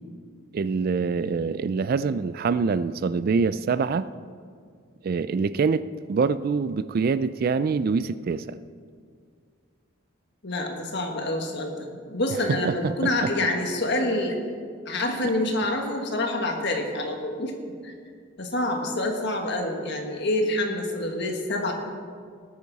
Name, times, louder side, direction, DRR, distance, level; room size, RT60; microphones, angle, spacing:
voice 1, 0.5-4.1 5.0-8.6 12.6-13.1, right 5 dB, 45° right, 15 dB, 0.3 m, -25 dB
voice 2, 10.4-14.4 14.8-17.6 17.8-17.9 18.4-21.7, left 1 dB, 55° left, 3 dB, 1.6 m, -27 dB
18.5 x 9.4 x 4.1 m, 2.1 s
head